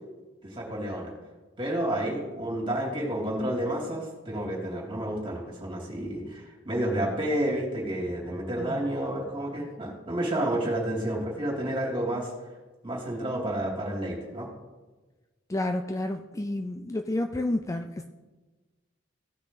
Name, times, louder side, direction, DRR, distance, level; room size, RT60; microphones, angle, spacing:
voice 1, 0.4-1.1 1.6-12.3 12.8-14.5, right 1 dB, 25° right, -3 dB, 3.2 m, -30 dB
voice 2, 15.5-18.0, left 1 dB, 15° left, 7 dB, 0.4 m, -30 dB
17.0 x 6.3 x 4.1 m, 1.2 s
head